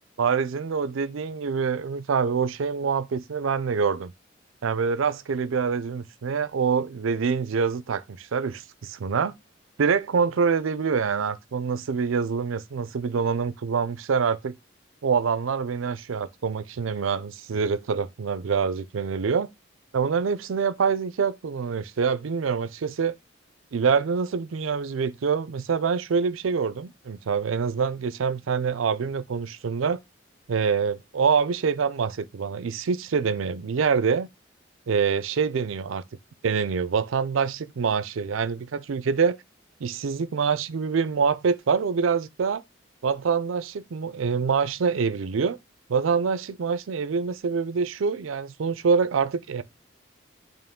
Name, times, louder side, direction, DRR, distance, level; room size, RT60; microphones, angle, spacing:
voice 1, 0.2-4.1 4.6-9.3 9.8-14.5 15.0-19.5 19.9-23.1 23.7-30.0 30.5-34.3 34.9-36.0 36.4-39.4 39.8-42.6 43.0-45.6 45.9-49.6, right 5 dB, 85° right, 0.5 m, -25 dB
9.1 x 3.0 x 3.6 m
head